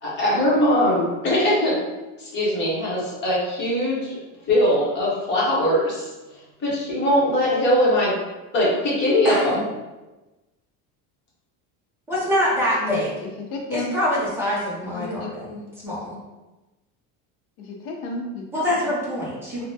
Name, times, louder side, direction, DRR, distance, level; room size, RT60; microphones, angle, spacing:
voice 1, 0.0-1.8 2.2-4.1 4.5-8.1 8.5-9.6, left 1 dB, 30° left, -6 dB, 0.9 m, -21 dB
voice 2, 9.2-9.6 12.1-13.1 13.7-16.2 18.5-19.6, left 1 dB, 5° right, -7 dB, 0.5 m, -25 dB
voice 3, 12.8-13.9 14.9-15.3 17.6-18.9, left 2 dB, 80° left, 1 dB, 0.8 m, -32 dB
3.4 x 2.1 x 2.7 m, 1.1 s
cardioid pair, 170°, 39 cm